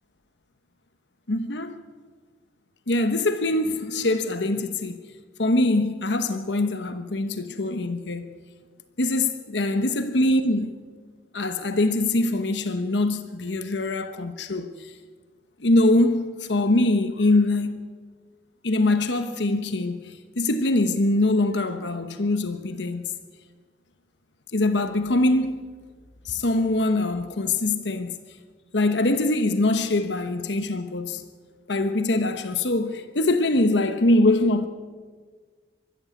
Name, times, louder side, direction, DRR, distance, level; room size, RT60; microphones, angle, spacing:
voice 1, 1.3-1.8 2.9-5.0 5.4-8.3 9.0-10.8 11.3-14.9 15.6-17.8 18.6-23.2 24.5-25.7 26.2-28.2 28.7-31.2 31.7-34.7, left 2 dB, 80° left, 1.1 m, -23 dB
23.5 x 13.5 x 8.3 m
head